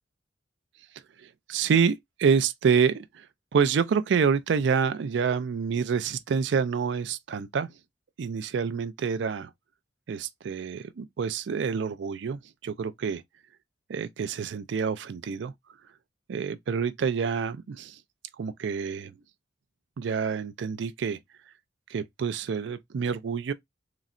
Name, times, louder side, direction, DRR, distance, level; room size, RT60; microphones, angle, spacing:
voice 1, 1.2-3.3 3.5-7.7 8.2-9.5 10.1-13.2 13.9-15.5 16.3-18.0 18.4-19.1 20.0-21.2 21.9-23.5, right 6 dB, 70° right, 0.4 m, -27 dB
3.9 x 2.1 x 2.4 m
head